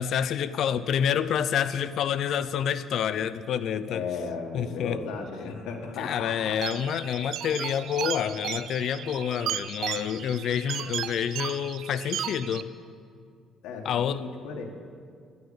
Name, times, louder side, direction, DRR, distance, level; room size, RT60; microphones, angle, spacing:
voice 1, 0.0-4.0 4.5-5.0 6.0-12.7 13.8-14.2, left 8 dB, 55° left, 14 dB, 0.5 m, -28 dB
voice 2, 3.9-6.6 13.6-14.6, left 5 dB, 90° left, 1 dB, 1.7 m, -35 dB
sound 1, 6.6-12.6, right 10 dB, 60° right, 0.5 m, -35 dB
11.5 x 9.4 x 8.7 m, 2.2 s
cardioid pair, 155°, 0 cm